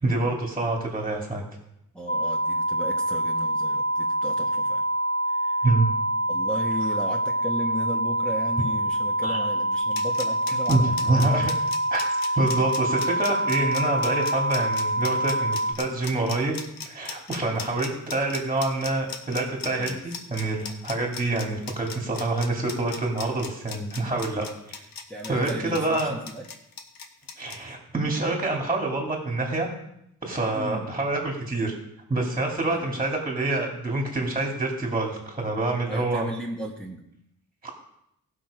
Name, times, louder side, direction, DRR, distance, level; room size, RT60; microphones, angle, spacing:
voice 1, 0.0-1.4 5.6-5.9 9.2-9.4 10.7-11.5 11.9-12.0 12.4-16.6 16.8-24.8 25.3-26.1 27.4-29.7 30.2-31.7 32.1-36.3 37.6-37.7, right 2 dB, 15° right, 0 dB, 2.7 m, -26 dB
voice 2, 1.9-4.8 5.3-5.6 6.3-11.2 19.8-20.0 25.1-26.4 30.5-30.8 32.7-33.0 35.8-37.0, right 1 dB, 5° left, -3 dB, 1.5 m, -35 dB
sound 1, 2.1-15.7, right 1 dB, 30° left, 0.8 m, -26 dB
sound 2, 9.7-27.6, left 6 dB, 85° left, 1.4 m, -37 dB
18.0 x 6.2 x 5.1 m, 0.78 s
cardioid pair, 100°, 34 cm